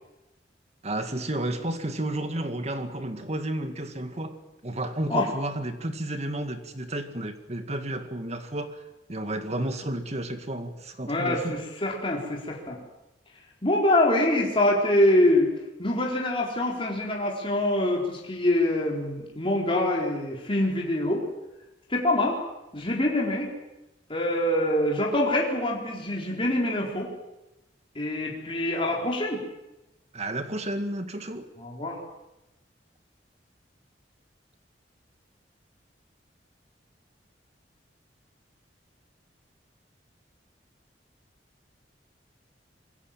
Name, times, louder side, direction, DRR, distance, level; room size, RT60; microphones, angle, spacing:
voice 1, 0.8-4.4 4.6-8.8 9.1-11.6 30.1-31.5, right 1 dB, 40° right, 8 dB, 2.2 m, -32 dB
voice 2, 11.1-12.8 13.6-15.5 15.8-21.2 21.9-22.4 22.7-23.5 24.1-27.1 27.9-29.4 31.6-32.0, left 1 dB, 30° left, -2 dB, 4.2 m, -25 dB
27.0 x 22.0 x 7.5 m, 0.97 s
head